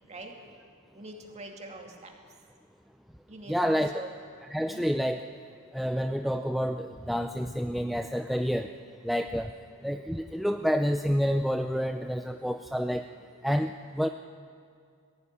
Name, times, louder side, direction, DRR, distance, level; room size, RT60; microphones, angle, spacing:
voice 1, 0.9-2.1 3.3-4.1 4.6-4.9, right 2 dB, 30° right, 2 dB, 2.5 m, -43 dB
voice 2, 3.5-4.0 4.5-5.3 5.7-8.7 9.0-9.5 9.8-13.1 13.4-14.1, equal, ahead, 6 dB, 0.5 m, -28 dB
21.5 x 15.5 x 9.8 m, 2.3 s
head